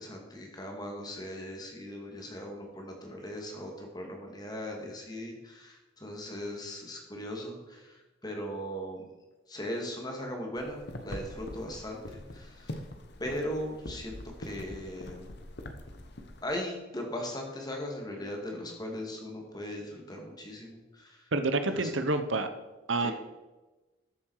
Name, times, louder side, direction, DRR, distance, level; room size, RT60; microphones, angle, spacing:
voice 1, 0.0-9.1 9.5-12.8 13.2-15.3 16.4-21.3 21.6-21.9 23.0-23.1, left 1 dB, 20° left, 1 dB, 2.2 m, -39 dB
sound 1, 10.6-16.4, left 1 dB, 55° left, 1.2 m, -43 dB
voice 2, 21.3-22.5 22.9-23.1, right 2 dB, 75° right, 9 dB, 1.0 m, -28 dB
13.5 x 7.5 x 4.8 m, 1.1 s
head